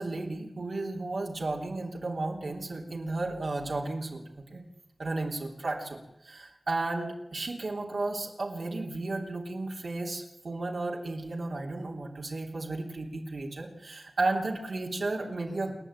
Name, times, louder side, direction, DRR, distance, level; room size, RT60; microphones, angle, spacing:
voice 1, 0.0-4.6 5.0-15.7, right 2 dB, 70° right, -1 dB, 3.3 m, -33 dB
28.0 x 10.5 x 9.0 m, 0.89 s
wide cardioid pair, 80°, 0 cm